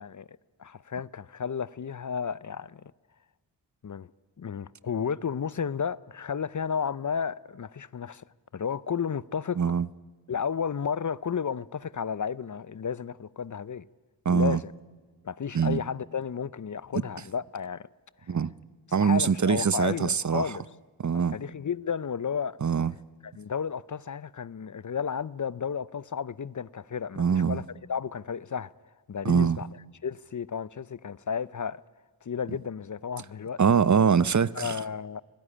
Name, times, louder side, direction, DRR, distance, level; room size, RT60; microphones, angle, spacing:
voice 1, 0.0-2.8 3.8-4.1 4.4-8.2 8.5-9.6 10.3-13.9 14.3-14.7 15.2-17.9 19.0-20.6 21.1-22.6 23.2-28.7 29.1-31.8 32.2-33.8 34.5-35.2, left 7 dB, 45° left, 0.6 m, -33 dB
voice 2, 9.6-9.9 14.2-14.6 15.5-15.8 18.3-18.5 18.9-20.5 21.0-21.4 22.6-22.9 27.2-27.6 29.2-29.6 33.6-34.8, right 6 dB, 45° right, 0.7 m, -23 dB
25.0 x 16.5 x 10.0 m
cardioid pair, 40°, 42 cm